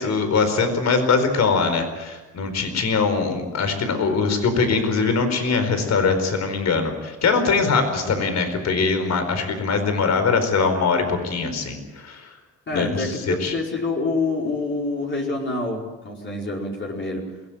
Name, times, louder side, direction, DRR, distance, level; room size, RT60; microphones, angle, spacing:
voice 1, 0.0-12.3 12.7-13.5, left 4 dB, 60° left, 8 dB, 4.6 m, -22 dB
voice 2, 12.7-17.3, left 3 dB, 40° left, -1 dB, 5.2 m, -27 dB
22.0 x 17.5 x 9.1 m, 1.2 s
cardioid pair, 90°, 30 cm